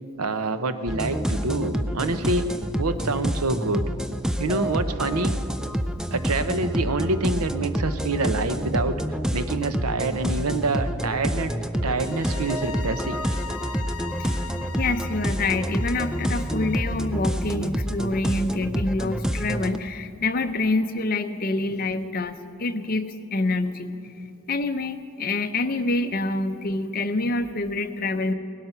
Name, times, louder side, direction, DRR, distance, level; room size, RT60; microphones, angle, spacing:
voice 1, 0.2-2.4 2.7-3.8 4.4-5.3 6.1-11.5 11.8-13.2, right 3 dB, 85° right, 10 dB, 0.8 m, -26 dB
sound 1, 0.9-19.8, equal, 5° right, 0.4 m, -28 dB
sound 2, 11.9-17.1, left 5 dB, 80° left, 0.7 m, -40 dB
voice 2, 14.8-24.0 24.5-28.3, left 2 dB, 40° left, 8 dB, 0.7 m, -26 dB
18.5 x 12.0 x 5.8 m, 2.6 s
head